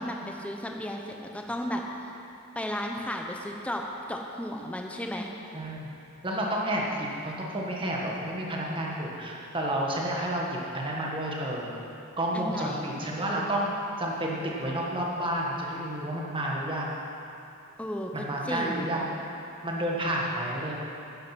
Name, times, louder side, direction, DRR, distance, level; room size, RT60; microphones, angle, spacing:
voice 1, 0.0-1.8 2.5-5.3 12.3-12.9 17.8-19.0, equal, 5° left, 1 dB, 0.8 m, -34 dB
voice 2, 5.5-5.9 6.2-11.7 12.2-13.7 14.0-17.0 18.1-19.1 19.6-20.7, right 1 dB, 25° right, -3 dB, 1.7 m, -30 dB
10.5 x 10.0 x 6.1 m, 2.7 s
head